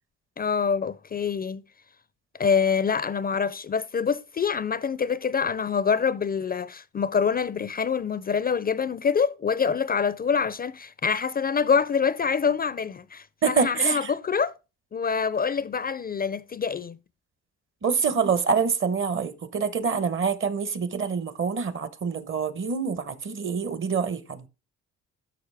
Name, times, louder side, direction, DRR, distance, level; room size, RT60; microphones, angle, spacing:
voice 1, 0.4-1.6 2.4-14.5 14.9-17.0, left 6 dB, 30° left, 0.4 m, -25 dB
voice 2, 13.4-14.1 17.8-24.5, right 6 dB, 45° right, 0.9 m, -26 dB
11.5 x 6.2 x 3.4 m
cardioid pair, 90°, 30 cm